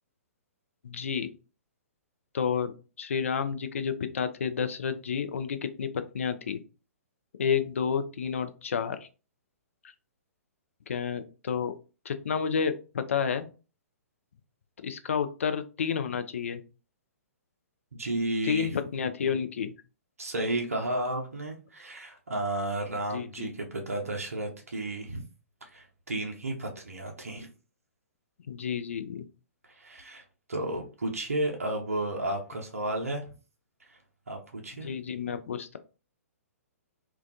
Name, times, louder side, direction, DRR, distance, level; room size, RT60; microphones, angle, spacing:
voice 1, 0.8-1.3 2.3-5.9 6.1-6.6 7.4-9.1 10.9-11.7 12.1-13.5 14.8-16.6 18.4-19.7 23.1-23.5 28.5-29.3 34.8-35.8, left 7 dB, 60° left, 9 dB, 0.3 m, -30 dB
voice 2, 17.9-18.8 20.2-25.2 25.7-27.5 29.6-30.2 30.5-33.2 33.8-34.0 34.3-34.9, right 1 dB, 70° right, 1 dB, 0.5 m, -32 dB
2.2 x 2.2 x 2.4 m, 0.34 s
figure-of-eight pair, 120°, 8 cm